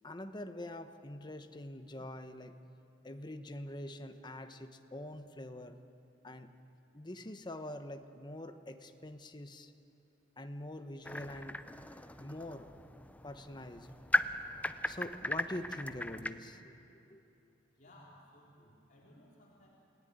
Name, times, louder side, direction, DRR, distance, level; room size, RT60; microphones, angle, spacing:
voice 1, 0.0-2.6 3.0-5.8 6.2-6.5 6.9-9.7 10.4-11.6 12.2-12.7 13.2-13.9 14.9-16.8 17.0-17.3, left 1 dB, 25° left, 8 dB, 1.1 m, -44 dB
sound 1, 11.0-16.3, left 1 dB, 10° left, 0.7 m, -37 dB
voice 2, 17.8-19.7, left 1 dB, 45° left, -4 dB, 3.8 m, -59 dB
29.0 x 18.5 x 9.5 m, 2.8 s
head